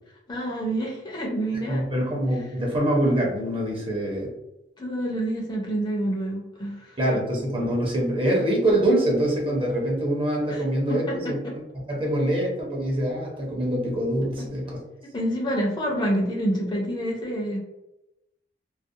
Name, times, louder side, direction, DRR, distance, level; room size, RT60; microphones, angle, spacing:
voice 1, 0.3-1.9 4.8-7.0 10.5-11.2 15.1-17.6, right 1 dB, 25° left, -2 dB, 0.5 m, -27 dB
voice 2, 1.7-4.3 7.0-11.4 11.9-14.8, right 1 dB, 30° right, -2 dB, 0.7 m, -24 dB
2.4 x 2.1 x 2.6 m, 0.92 s
head